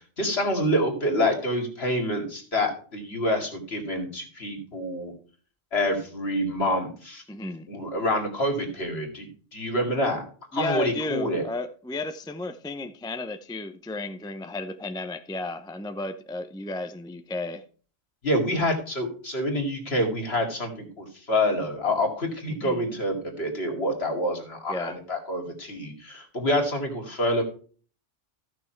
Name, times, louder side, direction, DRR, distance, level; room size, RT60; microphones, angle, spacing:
voice 1, 0.2-5.1 5.7-7.2 7.7-10.2 10.5-11.4 18.2-27.4, left 1 dB, 55° left, 2.7 m, -27 dB
voice 2, 7.3-7.7 10.5-17.6 22.5-22.9 24.7-25.0, left 2 dB, 5° left, 0.5 m, -33 dB
14.5 x 6.3 x 4.6 m
omnidirectional pair, 1.3 m